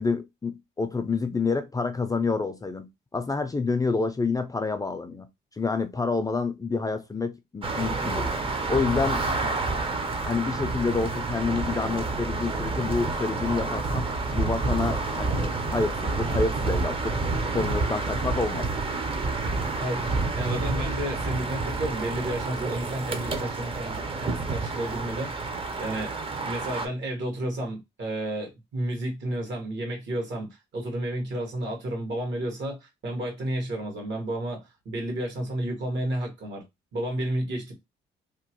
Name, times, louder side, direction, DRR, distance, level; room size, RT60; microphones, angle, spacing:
voice 1, 0.0-5.3 5.6-8.4 8.7-9.6 10.3-17.2 17.5-18.7, left 4 dB, 20° left, 0.4 m, -28 dB
sound 1, 7.6-26.9, right 3 dB, 25° right, 0.6 m, -29 dB
voice 2, 19.8-36.6 36.9-37.7, right 1 dB, 65° right, 1.5 m, -32 dB
2.9 x 2.1 x 2.9 m
cardioid pair, 90°, 20 cm